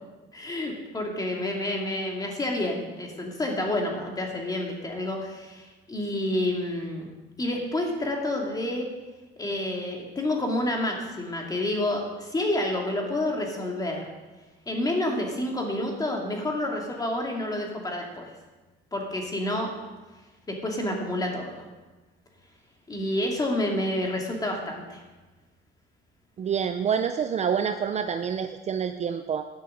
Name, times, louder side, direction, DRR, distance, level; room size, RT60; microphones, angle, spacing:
voice 1, 0.3-7.1 7.4-8.9 9.4-14.1 14.7-18.3 18.9-19.7 20.5-21.6 22.9-25.0, left 1 dB, 20° left, 1 dB, 2.3 m, -29 dB
voice 2, 26.4-29.5, right 7 dB, 30° right, 8 dB, 0.5 m, -27 dB
10.5 x 6.6 x 6.4 m, 1.2 s
cardioid pair, 115°, 21 cm